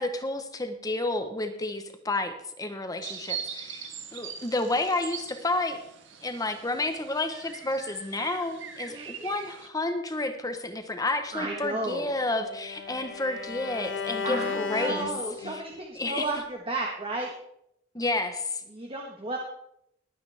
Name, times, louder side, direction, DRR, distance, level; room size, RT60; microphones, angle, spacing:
voice 1, 0.0-5.8 6.2-15.1 15.4-15.6 16.0-16.3 17.9-18.6, left 2 dB, 20° left, 7 dB, 1.1 m, -30 dB
sound 1, 3.0-9.7, right 7 dB, 75° right, 1.5 m, -41 dB
voice 2, 8.8-9.3 11.3-12.1 14.2-17.3 18.7-19.4, right 2 dB, 30° right, 0 dB, 1.4 m, -33 dB
Bowed string instrument, 11.6-15.8, left 5 dB, 85° left, 1.3 m, -35 dB
20.0 x 9.0 x 3.5 m, 0.74 s
head